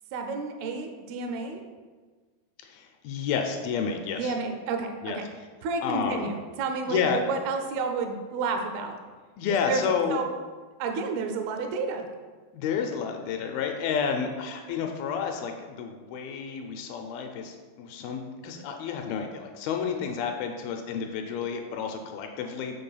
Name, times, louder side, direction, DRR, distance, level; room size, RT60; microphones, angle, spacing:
voice 1, 0.1-1.6 4.2-5.2 5.6-9.0 9.5-9.8 10.1-10.2 10.8-12.1, right 4 dB, 80° right, 4 dB, 2.6 m, -31 dB
voice 2, 2.6-4.3 5.0-5.2 5.8-6.3 6.9-7.2 9.4-10.2 12.5-22.8, left 6 dB, 80° left, 4 dB, 2.3 m, -30 dB
6.0 x 4.1 x 5.5 m, 1.4 s
omnidirectional pair, 4.5 m